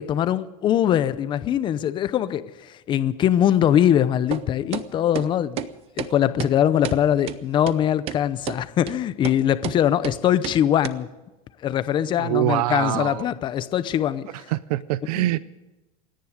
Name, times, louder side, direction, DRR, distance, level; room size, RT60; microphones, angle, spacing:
voice 1, 0.0-5.6 6.0-11.1 11.6-14.3 15.1-15.4, left 10 dB, 25° left, 14 dB, 0.7 m, -22 dB
sound 1, 4.3-4.4 4.7-4.9 5.2-5.3 5.6-5.7 6.0-6.1 6.4-6.5 6.8-7.0 7.3-7.4 7.7-7.8 8.1-8.2 8.5-8.6 8.9-9.0 9.2-9.4 9.6-9.8 10.0-10.2 10.4-10.6 10.8-10.9, right 11 dB, 30° right, 0.7 m, -30 dB
voice 2, 12.2-13.2 14.5-15.4, right 16 dB, 80° right, 18 dB, 0.6 m, -24 dB
28.0 x 10.5 x 5.0 m, 1.1 s
supercardioid pair, 160°, 19 cm